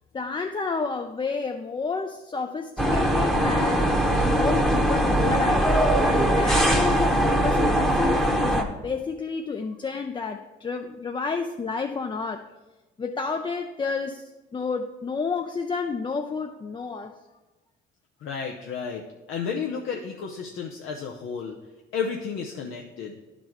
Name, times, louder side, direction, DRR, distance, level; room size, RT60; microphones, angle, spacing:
voice 1, 0.1-3.9 4.2-5.7 6.0-12.5 13.0-17.2, left 4 dB, 25° left, 5 dB, 0.4 m, -30 dB
sound 1, 2.8-8.6, right 1 dB, ahead, 0.9 m, -21 dB
voice 2, 18.2-19.0 19.3-21.6 21.9-23.1, left 6 dB, 85° left, 1 dB, 0.7 m, -32 dB
10.5 x 4.1 x 4.5 m, 1.2 s
cardioid pair, 90°, 20 cm